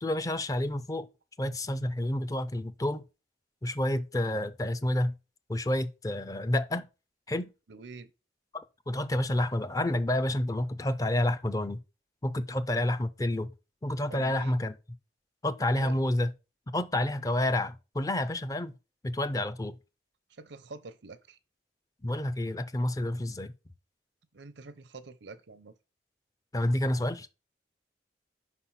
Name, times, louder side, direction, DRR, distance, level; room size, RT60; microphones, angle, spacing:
voice 1, 0.0-1.1 1.4-3.0 3.6-5.1 5.5-6.8 7.3-7.5 8.9-11.8 12.2-13.5 13.8-14.8 15.4-16.3 16.7-18.7 19.0-19.8 22.0-23.5 26.5-27.3, left 1 dB, 20° left, 0.4 m, -29 dB
voice 2, 7.7-8.1 14.1-14.6 15.8-16.0 20.3-21.4 24.3-25.7, right 3 dB, 85° right, 0.7 m, -46 dB
5.1 x 4.2 x 5.7 m
head